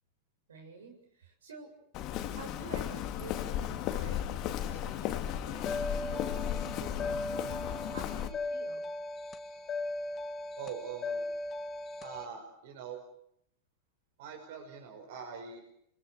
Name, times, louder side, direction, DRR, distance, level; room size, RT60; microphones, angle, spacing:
voice 1, 0.5-1.7 2.3-8.9, right 4 dB, 90° right, 3 dB, 7.5 m, -50 dB
Walk footsteps, 1.9-8.3, left 11 dB, 50° left, 2.5 m, -35 dB
sound 1, 5.6-12.2, left 2 dB, 30° left, 2.3 m, -38 dB
voice 2, 10.6-11.3 12.0-13.0 14.2-15.7, right 6 dB, 70° right, 3 dB, 5.4 m, -43 dB
29.0 x 21.5 x 8.1 m, 0.75 s
hypercardioid pair, 105°, 0 cm